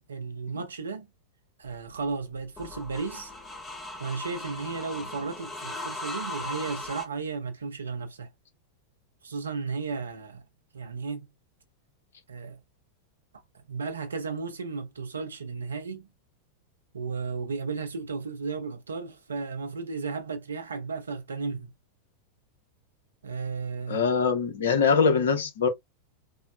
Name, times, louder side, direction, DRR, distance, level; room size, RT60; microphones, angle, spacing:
voice 1, 0.1-1.1 1.6-3.3 4.0-8.3 9.2-10.4 10.7-11.3 12.3-12.6 13.5-16.1 16.9-21.7 23.2-24.1, right 4 dB, 70° right, 0.6 m, -34 dB
sound 1, 1.7-7.1, left 2 dB, 20° left, 0.6 m, -38 dB
voice 2, 23.9-25.7, left 5 dB, 65° left, 0.8 m, -23 dB
3.7 x 2.1 x 2.4 m
figure-of-eight pair, 90°, 0 cm